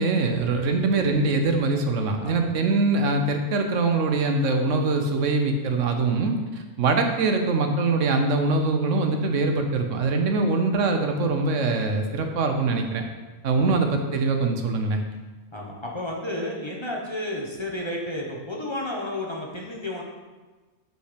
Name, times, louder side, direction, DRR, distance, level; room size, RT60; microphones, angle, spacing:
voice 1, 0.0-13.1 13.4-15.0, right 3 dB, 85° right, 5 dB, 1.2 m, -23 dB
voice 2, 15.5-20.0, left 1 dB, 25° left, -2 dB, 0.9 m, -32 dB
6.2 x 5.3 x 5.0 m, 1.3 s
omnidirectional pair, 1.3 m